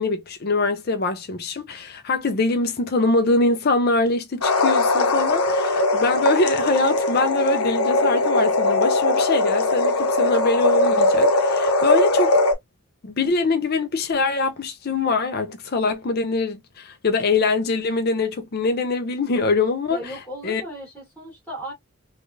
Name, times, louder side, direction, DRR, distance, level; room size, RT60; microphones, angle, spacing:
voice 1, 0.0-12.4 13.0-20.0 20.4-20.6, left 3 dB, 45° left, 0.5 m, -23 dB
sound 1, 4.4-12.5, left 2 dB, 85° left, 0.8 m, -20 dB
voice 2, 19.9-21.7, equal, 5° left, 1.4 m, -36 dB
3.3 x 2.3 x 2.5 m
head